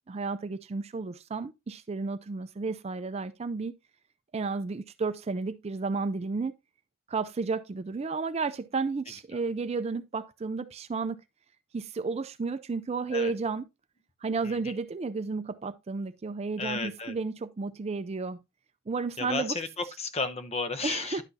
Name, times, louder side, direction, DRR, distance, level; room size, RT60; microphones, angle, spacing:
voice 1, 0.1-3.7 4.3-6.5 7.1-11.2 11.7-13.7 14.2-18.4 18.9-19.6 20.8-21.2, right 4 dB, 30° right, 0.4 m, -32 dB
voice 2, 16.6-17.2 19.2-21.2, left 3 dB, 30° left, 0.7 m, -33 dB
10.5 x 5.9 x 2.7 m
head